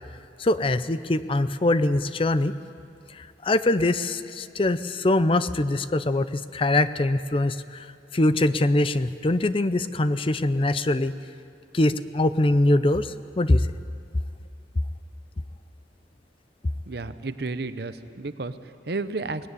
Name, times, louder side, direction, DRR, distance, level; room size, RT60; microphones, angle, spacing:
voice 1, 0.4-2.5 3.1-11.1 11.7-13.7, left 2 dB, 30° left, 13 dB, 0.5 m, -23 dB
voice 2, 16.9-19.5, right 3 dB, 60° right, 12 dB, 0.8 m, -32 dB
19.5 x 16.5 x 9.7 m, 2.4 s
head